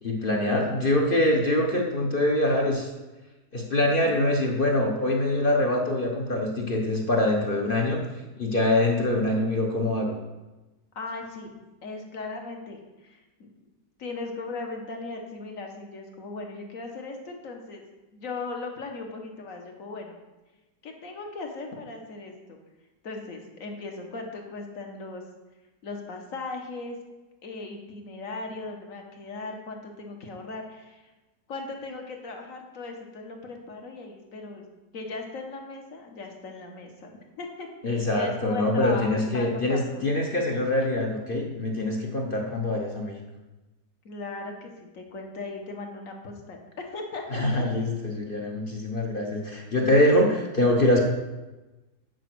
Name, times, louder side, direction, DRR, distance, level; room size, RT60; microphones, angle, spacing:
voice 1, 0.0-2.9 3.5-8.0 8.4-10.1 37.8-43.2 47.3-51.0, left 1 dB, 40° left, 0 dB, 1.0 m, -24 dB
voice 2, 10.9-11.5 11.8-13.5 14.0-17.8 18.1-20.2 20.8-22.6 23.0-25.2 25.8-27.0 27.4-31.0 31.5-34.7 34.9-37.1 37.4-40.0 44.0-47.6, left 3 dB, 55° left, 2 dB, 1.6 m, -38 dB
9.2 x 5.0 x 6.1 m, 1.1 s
omnidirectional pair, 1.7 m